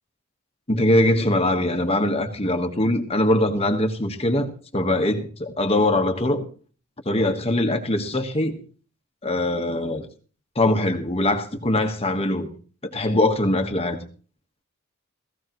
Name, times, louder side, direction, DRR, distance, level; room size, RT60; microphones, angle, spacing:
voice 1, 0.7-6.4 7.0-8.6 9.2-10.1 10.5-12.5 12.8-14.0, left 1 dB, 30° left, 1.4 m, -22 dB
18.0 x 15.0 x 3.1 m
head